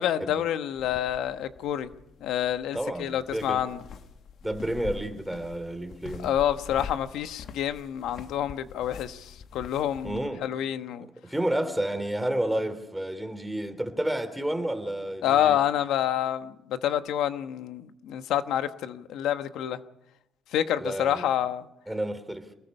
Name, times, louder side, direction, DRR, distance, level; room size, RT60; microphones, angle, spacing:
voice 1, 0.0-1.9 2.2-3.8 6.2-11.1 15.2-19.8 20.5-21.6, left 11 dB, 85° left, 1.1 m, -28 dB
sound 1, 0.8-10.3, left 6 dB, 65° left, 1.4 m, -45 dB
voice 2, 2.7-3.6 4.4-6.4 10.0-10.4 11.2-15.6 20.8-21.3 21.9-22.5, right 1 dB, 5° right, 3.0 m, -30 dB
27.5 x 20.0 x 5.5 m
cardioid pair, 90°, 0 cm